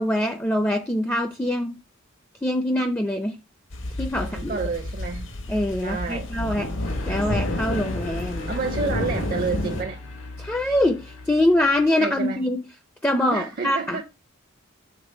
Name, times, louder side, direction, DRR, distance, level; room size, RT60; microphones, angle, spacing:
voice 1, 0.0-1.8 2.4-3.4 4.0-4.6 5.5-6.7 7.1-8.5 10.4-12.6 13.0-14.0, left 1 dB, 10° left, 0.4 m, -24 dB
sound 1, 3.7-9.8, left 1 dB, 65° left, 1.0 m, -29 dB
voice 2, 4.2-5.3 5.8-6.3 8.5-10.0 12.0-12.4 13.3-14.0, right 4 dB, 45° right, 0.5 m, -29 dB
sound 2, 6.8-12.2, left 2 dB, 85° left, 1.4 m, -40 dB
5.9 x 3.6 x 5.5 m
head